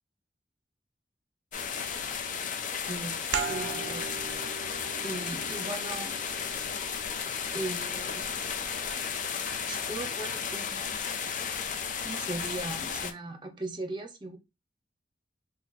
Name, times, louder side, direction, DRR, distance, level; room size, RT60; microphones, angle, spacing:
sound 1, 1.5-13.1, left 6 dB, 50° left, 0.5 m, -34 dB
voice 1, 2.8-4.1 5.0-6.1 7.5-8.3 9.7-10.9 12.0-14.4, right 2 dB, 25° right, 5 dB, 0.7 m, -38 dB
sound 2, 3.3-8.6, right 6 dB, 70° right, 0.4 m, -39 dB
2.8 x 2.6 x 4.0 m, 0.25 s
head